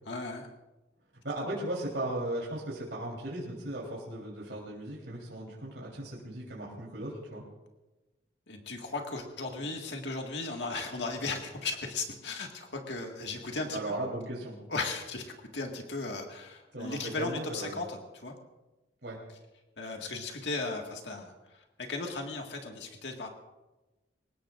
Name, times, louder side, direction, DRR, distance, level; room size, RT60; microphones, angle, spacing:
voice 1, 0.1-0.5 8.5-13.8 14.7-18.3 19.8-23.3, left 3 dB, 75° left, 2 dB, 1.9 m, -36 dB
voice 2, 1.2-7.4 13.7-14.6 16.7-17.8 19.0-19.2, right 1 dB, 75° right, -4 dB, 3.7 m, -37 dB
24.0 x 20.0 x 2.6 m, 1.1 s
head